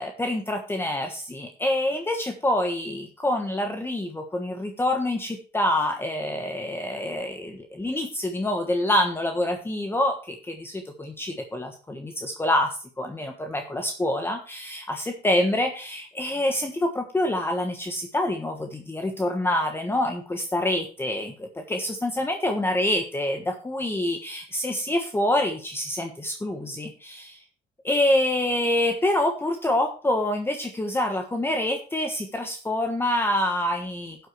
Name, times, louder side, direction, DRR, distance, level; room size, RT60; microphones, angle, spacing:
voice 1, 0.0-27.4 27.8-34.3, left 1 dB, 15° left, 4 dB, 1.3 m, -26 dB
12.0 x 8.0 x 3.3 m, 0.39 s
cardioid pair, 110°, 17 cm